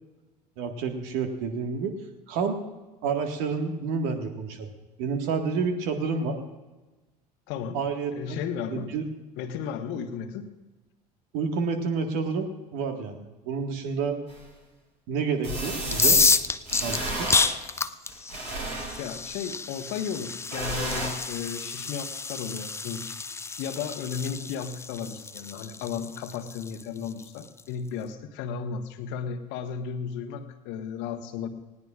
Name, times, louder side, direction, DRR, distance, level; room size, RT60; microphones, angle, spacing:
voice 1, 0.6-1.9 2.3-2.6 3.0-4.7 5.0-6.4 7.7-8.4 8.7-9.1 11.3-14.2 15.1-16.2 16.8-17.3, right 5 dB, 60° right, 5 dB, 1.7 m, -29 dB
voice 2, 7.5-7.8 8.1-8.9 9.4-10.5 19.0-23.2 23.6-31.5, left 7 dB, 60° left, 7 dB, 1.3 m, -34 dB
sound 1, 14.3-14.4 15.4-16.3 16.6-17.5 18.1-19.2 20.5-21.1, right 2 dB, 80° right, 5.7 m, -32 dB
sound 2, 15.9-27.6, left 4 dB, 15° left, 0.5 m, -29 dB
19.5 x 18.0 x 2.5 m, 1.2 s
figure-of-eight pair, 60°, 21 cm